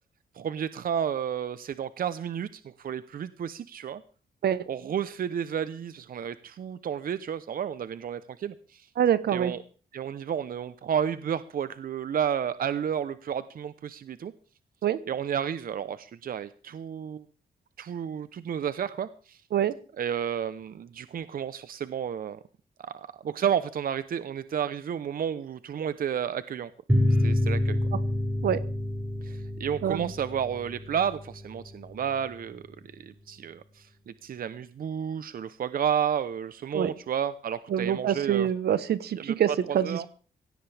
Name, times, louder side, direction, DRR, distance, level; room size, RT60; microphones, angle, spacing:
voice 1, 0.3-4.0 4.7-8.9 9.3-9.6 9.9-14.3 15.1-17.3 17.8-19.4 20.0-22.4 22.8-26.7 27.2-27.8 29.2-38.5 39.1-40.1, right 8 dB, 60° right, 14 dB, 0.8 m, -31 dB
voice 2, 9.0-9.5 14.8-15.0 19.5-19.7 28.4-28.6 29.8-30.1 36.7-36.9 37.7-39.5 39.7-40.1, right 9 dB, 75° right, 15 dB, 1.1 m, -25 dB
sound 1, 26.9-32.0, left 1 dB, 10° right, 6.2 m, -28 dB
17.0 x 16.5 x 3.4 m, 0.40 s
cardioid pair, 85°, 17 cm